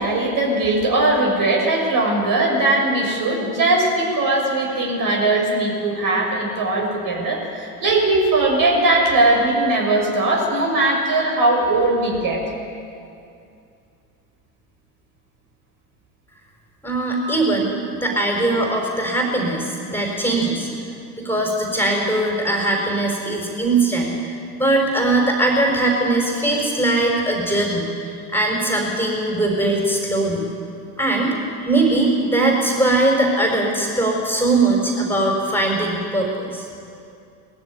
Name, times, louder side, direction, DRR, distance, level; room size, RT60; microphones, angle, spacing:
voice 1, 0.0-12.4 17.2-17.3, right 2 dB, 45° right, 0 dB, 6.2 m, -19 dB
voice 2, 16.8-17.8 18.0-20.7 21.2-27.9 28.3-30.4 31.0-31.4 31.6-36.7, right 2 dB, 5° left, 0 dB, 4.9 m, -20 dB
19.5 x 14.0 x 9.9 m, 2.5 s
figure-of-eight pair, 70°, 48 cm